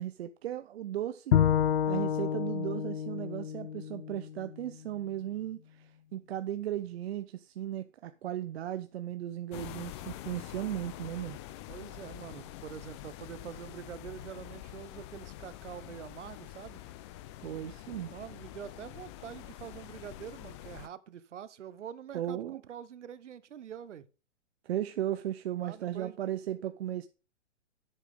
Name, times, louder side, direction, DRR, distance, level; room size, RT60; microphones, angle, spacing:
voice 1, 0.0-1.3 1.9-11.4 17.4-18.1 22.1-22.6 24.7-27.1, right 12 dB, 60° right, 0.7 m, -36 dB
Bowed string instrument, 1.3-4.6, left 9 dB, 65° left, 0.7 m, -29 dB
sound 1, 9.5-20.9, left 14 dB, 25° left, 0.5 m, -46 dB
voice 2, 11.7-16.8 17.6-17.8 18.0-24.1 25.6-26.2, right 9 dB, 80° right, 1.0 m, -45 dB
9.9 x 8.2 x 3.6 m
hypercardioid pair, 135°, 36 cm